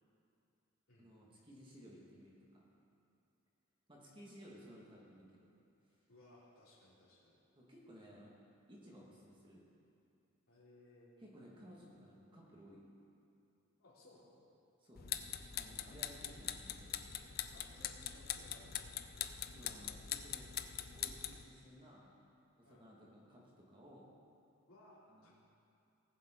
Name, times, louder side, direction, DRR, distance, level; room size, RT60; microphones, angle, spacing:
voice 1, 1.0-2.7 3.9-5.4 7.6-8.3 8.7-9.6 11.2-12.9 14.8-15.1 15.5-17.1 19.5-20.5 20.9-22.1 22.6-24.1 25.1-25.3, equal, 25° right, -4 dB, 1.9 m, -57 dB
voice 2, 6.1-7.4 10.5-11.1 13.8-14.5 17.5-18.9 22.6-22.9 24.7-25.3, left 1 dB, 80° left, -6 dB, 3.1 m, -62 dB
sound 1, 15.0-21.4, left 10 dB, 45° left, 0.5 m, -43 dB
19.5 x 7.4 x 3.9 m, 2.6 s
head